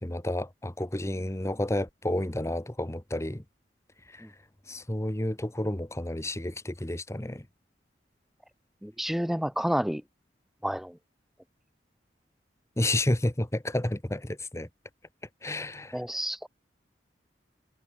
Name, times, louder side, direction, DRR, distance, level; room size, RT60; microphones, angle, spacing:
voice 1, 0.0-3.4 4.1-4.3 4.7-7.5 12.8-14.7 15.4-16.0, left 1 dB, 15° left, 1.1 m, -30 dB
voice 2, 8.8-10.0 10.6-10.9 15.9-16.5, equal, ahead, 0.5 m, -29 dB
head